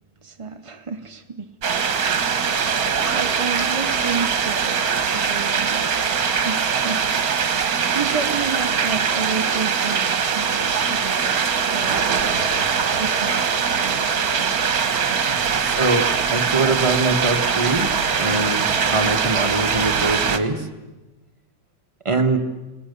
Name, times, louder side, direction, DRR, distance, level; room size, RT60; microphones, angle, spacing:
voice 1, 0.2-1.6 3.1-5.9 6.4-7.1 7.5-12.2 13.0-13.4 13.8-14.7 15.1-15.6 16.4-16.5, right 5 dB, 40° right, 6 dB, 0.4 m, -32 dB
sound 1, 1.6-20.4, right 6 dB, 55° right, 1.7 m, -22 dB
voice 2, 15.6-17.9 18.2-20.7 22.0-22.4, right 2 dB, 15° right, 4 dB, 1.5 m, -23 dB
29.0 x 19.5 x 6.8 m, 1.1 s
omnidirectional pair, 2.0 m